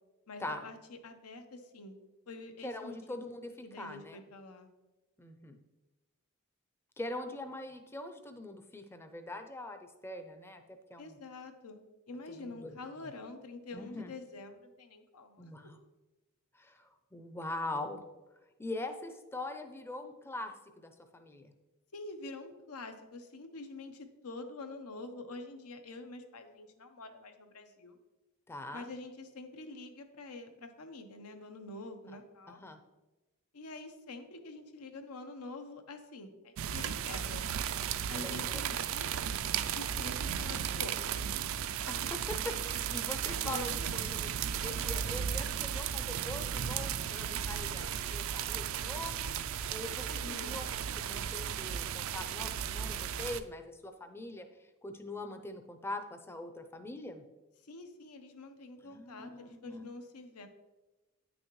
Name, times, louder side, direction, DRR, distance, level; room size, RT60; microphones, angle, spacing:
voice 1, 0.3-1.9 2.3-3.2 3.6-4.7 11.0-11.8 12.1-15.5 21.9-28.0 28.7-32.6 33.5-37.5 38.1-39.1 39.7-41.3 43.4-44.1 50.2-50.6 57.6-60.5, left 2 dB, 90° left, 7 dB, 0.9 m, -46 dB
voice 2, 2.6-4.2 5.2-5.6 7.0-11.2 12.3-12.8 13.7-14.1 15.4-15.8 16.5-18.0 18.6-21.5 28.5-28.9 32.5-32.8 38.1-38.6 41.9-44.3 44.6-49.3 49.7-57.2 58.8-59.9, left 2 dB, 10° left, 7 dB, 0.5 m, -43 dB
sound 1, 36.6-53.4, right 8 dB, 60° right, 0.4 m, -35 dB
9.1 x 6.3 x 3.1 m, 1.1 s
head